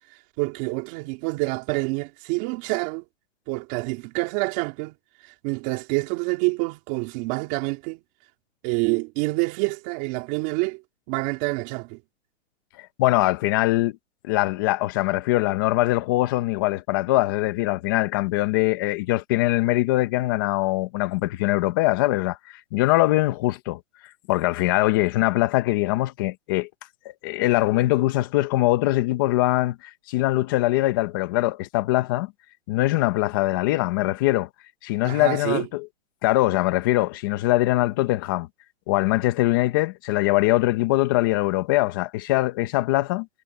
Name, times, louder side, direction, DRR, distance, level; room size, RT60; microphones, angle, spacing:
voice 1, 0.4-3.0 3.5-4.9 5.4-8.0 8.6-10.8 11.1-12.0 35.0-35.7, right 26 dB, 25° right, 3.8 m, -27 dB
voice 2, 12.8-14.0 14.2-22.4 22.7-23.8 24.3-26.7 27.2-32.3 32.7-34.5 34.8-35.9 36.2-38.5 38.9-43.3, left 18 dB, 20° left, 0.7 m, -22 dB
hypercardioid pair, 165°, 37 cm